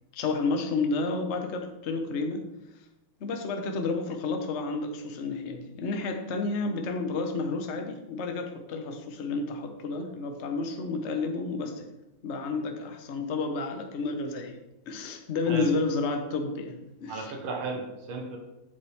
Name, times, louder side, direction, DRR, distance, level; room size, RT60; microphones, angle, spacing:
voice 1, 0.1-2.5 3.2-11.8 12.2-14.6 14.9-17.4, left 3 dB, 45° left, 5 dB, 0.9 m, -31 dB
voice 2, 17.1-18.4, right 3 dB, 85° right, 2 dB, 2.0 m, -35 dB
8.4 x 7.1 x 3.5 m, 0.94 s
omnidirectional pair, 2.2 m